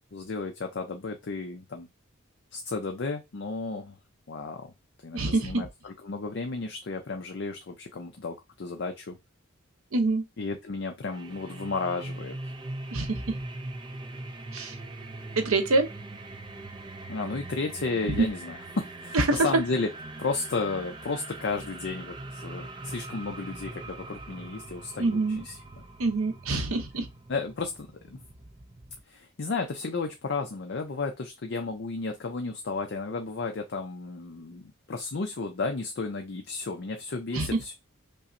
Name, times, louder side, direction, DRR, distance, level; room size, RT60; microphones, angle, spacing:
voice 1, 0.1-1.9 2.5-4.0 4.3-4.7 5.0-9.2 10.4-12.4 17.1-19.9 20.2-25.6 26.7-26.8 27.3-28.2 29.1-37.7, left 3 dB, 55° left, 0.5 m, -33 dB
voice 2, 5.1-5.7 9.9-10.2 12.9-13.4 14.5-14.8 15.4-15.9 18.1-18.3 19.1-19.4 25.0-25.4 26.0-27.1 37.3-37.7, right 2 dB, 80° right, 0.7 m, -26 dB
sound 1, 11.1-29.0, right 2 dB, 20° right, 0.4 m, -41 dB
5.4 x 2.1 x 2.5 m
head